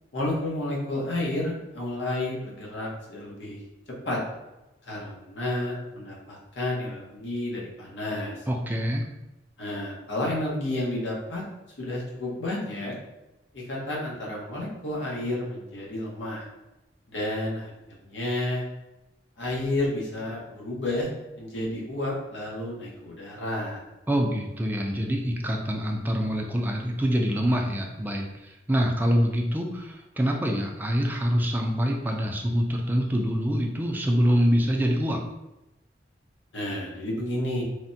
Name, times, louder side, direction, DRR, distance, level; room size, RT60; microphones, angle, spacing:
voice 1, 0.1-3.6 4.0-4.2 4.9-8.3 9.6-11.4 11.8-12.9 13.5-16.4 17.1-17.7 18.0-18.6 19.4-21.1 21.4-23.8 36.5-37.6, left 1 dB, 85° left, -3 dB, 0.9 m, -31 dB
voice 2, 8.5-9.0 24.1-35.2, equal, 10° right, 0 dB, 0.3 m, -25 dB
3.3 x 2.1 x 2.6 m, 0.95 s
head